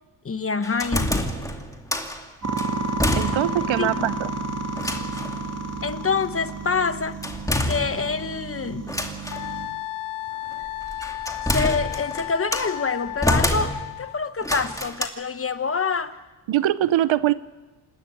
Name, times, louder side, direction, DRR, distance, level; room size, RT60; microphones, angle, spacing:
voice 1, 0.2-1.3 3.8-4.2 5.8-7.2 7.7-8.9 11.5-16.2, left 5 dB, 25° left, 1.1 m, -26 dB
sound 1, 0.6-2.2 2.6-3.7 4.0-4.1 4.8-5.4 7.2-8.3 8.9-9.5 10.6-12.8 13.2-14.1 14.4-15.1, left 1 dB, 5° left, 2.3 m, -27 dB
sound 2, 2.4-9.7, right 3 dB, 30° right, 3.2 m, -31 dB
voice 2, 3.2-4.3 16.5-17.3, right 13 dB, 65° right, 0.9 m, -22 dB
Wind instrument woodwind instrument, 9.3-14.2, left 15 dB, 80° left, 1.0 m, -33 dB
28.0 x 12.5 x 9.1 m
cardioid pair, 95°, 49 cm